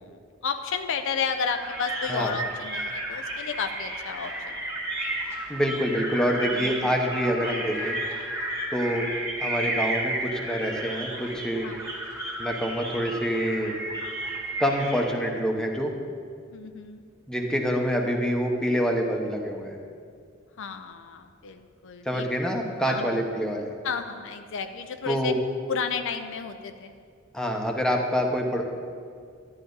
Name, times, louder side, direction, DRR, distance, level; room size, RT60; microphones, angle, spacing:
voice 1, 0.0-4.6 6.6-6.9 11.6-11.9 16.5-17.0 20.6-22.3 22.9-23.2 23.8-25.3 25.7-26.9, left 6 dB, 65° left, 7 dB, 0.5 m, -32 dB
sound 1, 1.5-15.0, right 1 dB, 15° right, 2.0 m, -33 dB
voice 2, 5.5-8.0 8.7-9.1 9.4-11.7 12.4-13.8 14.6-15.9 17.3-19.8 22.0-23.7 25.1-25.4 27.3-28.6, equal, 5° left, 1 dB, 1.0 m, -26 dB
11.5 x 10.5 x 4.0 m, 2.2 s
head